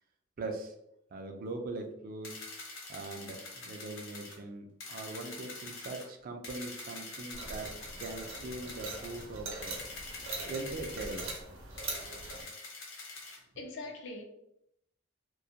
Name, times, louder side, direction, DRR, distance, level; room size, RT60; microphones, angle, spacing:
voice 1, 0.4-0.7 1.1-2.4 2.9-9.8 10.5-11.3, right 2 dB, 45° right, 0.4 m, -41 dB
sound 1, 2.2-4.4 4.8-6.1 6.4-9.3 9.6-11.4 11.8-13.4, left 3 dB, 85° left, 0.8 m, -45 dB
sound 2, 7.3-12.4, right 3 dB, 90° right, 0.7 m, -42 dB
voice 2, 13.3-14.2, left 2 dB, 65° left, 0.4 m, -43 dB
2.3 x 2.1 x 2.6 m
head